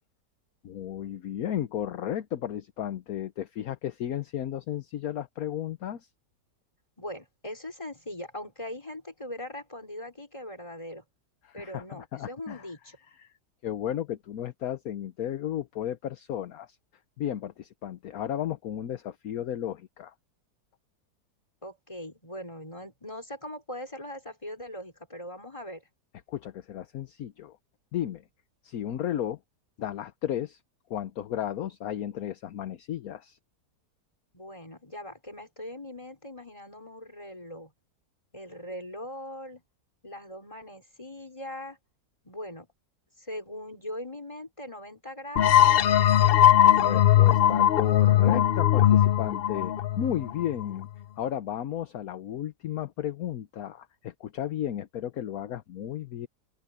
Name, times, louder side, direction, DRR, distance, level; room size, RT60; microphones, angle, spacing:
voice 1, 0.6-6.1 11.4-12.7 13.1-13.3 13.6-16.8 17.2-20.1 26.3-27.6 27.9-28.2 28.6-29.4 29.8-30.6 30.9-33.4 46.8-50.9 51.2-56.3, left 10 dB, 65° left, 1.2 m, -34 dB
voice 2, 7.0-11.0 11.5-13.0 21.6-25.9 34.3-37.7 38.3-39.6 40.0-41.8 42.2-42.7 43.2-45.5, left 1 dB, 20° left, 4.8 m, -40 dB
sound 1, 45.4-50.8, left 11 dB, 85° left, 0.5 m, -20 dB
open air
omnidirectional pair, 1.8 m